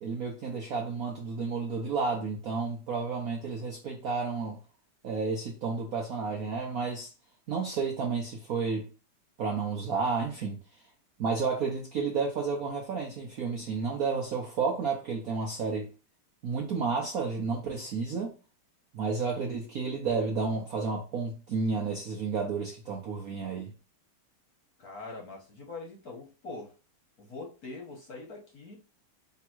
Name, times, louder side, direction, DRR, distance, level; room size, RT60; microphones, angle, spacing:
voice 1, 0.0-4.6 5.0-7.1 7.5-8.9 9.4-10.6 11.2-15.9 16.4-18.3 18.9-23.7, right 4 dB, 65° right, 0.9 m, -31 dB
voice 2, 24.8-26.8 27.2-28.8, left 3 dB, 55° left, 1.2 m, -43 dB
3.5 x 3.0 x 4.4 m
omnidirectional pair, 2.4 m